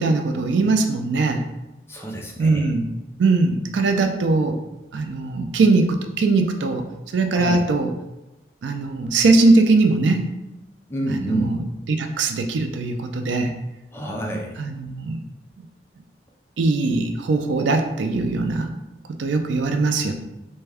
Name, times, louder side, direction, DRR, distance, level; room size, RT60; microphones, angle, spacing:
voice 1, 0.0-1.4 2.4-2.9 3.2-4.5 4.9-6.8 7.1-7.9 8.6-10.3 11.1-13.5 14.6-15.2 16.6-18.7 19.2-20.1, right 3 dB, 90° right, 6 dB, 0.4 m, -20 dB
voice 2, 1.9-2.7 7.3-7.6 10.9-11.5 13.9-14.6, right 1 dB, 15° left, 0 dB, 0.4 m, -28 dB
3.3 x 2.2 x 3.4 m, 0.98 s
head